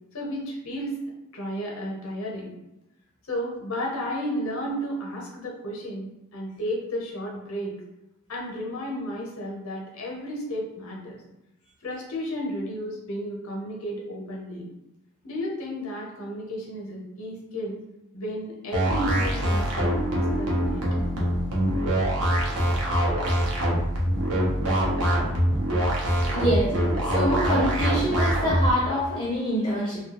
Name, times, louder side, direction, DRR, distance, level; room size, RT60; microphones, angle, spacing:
voice 1, 0.1-1.0 1.3-2.5 3.3-7.8 8.3-11.2 11.8-14.7 15.2-17.8 18.1-20.9 21.9-22.0, equal, 65° left, -1 dB, 0.7 m, -33 dB
sound 1, 18.7-28.7, equal, 85° right, 0.6 m, -24 dB
voice 2, 26.2-30.0, equal, 20° left, -6 dB, 0.4 m, -26 dB
2.2 x 2.1 x 2.8 m, 0.91 s
head